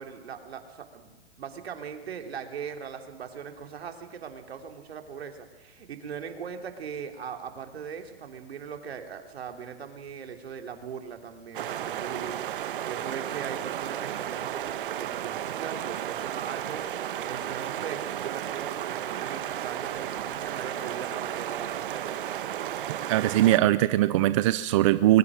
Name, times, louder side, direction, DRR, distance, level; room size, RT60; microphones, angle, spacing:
voice 1, 0.0-22.2, right 7 dB, 80° right, 5 dB, 3.4 m, -40 dB
sound 1, 11.5-23.6, right 11 dB, 60° right, 1.3 m, -33 dB
voice 2, 23.1-25.2, right 14 dB, 30° right, 13 dB, 0.6 m, -21 dB
22.5 x 21.0 x 6.3 m, 1.1 s
hypercardioid pair, 160°, 31 cm